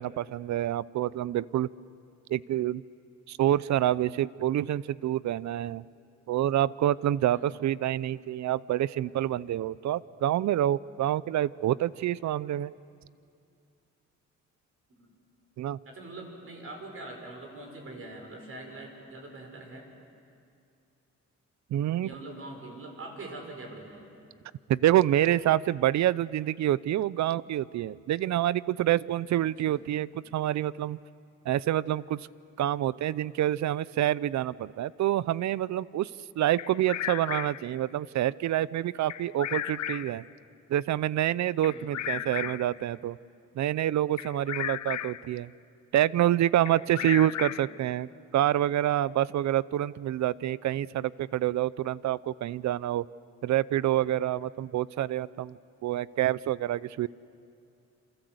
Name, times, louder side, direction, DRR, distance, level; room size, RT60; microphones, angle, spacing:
voice 1, 0.0-1.7 2.3-2.8 3.3-5.8 6.3-12.7 15.6-15.8 21.7-22.1 24.7-31.0 31.5-32.3 32.6-36.1 36.4-40.2 40.7-43.2 43.6-45.5 45.9-48.1 48.3-53.0 53.4-57.1, right 12 dB, 70° right, 20 dB, 0.6 m, -27 dB
voice 2, 15.8-19.9 22.0-24.1 29.4-29.8 41.7-42.3 46.9-47.3, right 2 dB, 50° right, 2 dB, 6.1 m, -44 dB
Bird vocalization bird call bird song, 36.6-37.7 39.1-40.2 41.6-42.8 44.2-45.3 46.6-47.8, left 12 dB, 70° left, 0.7 m, -35 dB
27.5 x 27.0 x 8.0 m, 2.4 s
cardioid pair, 125°, 29 cm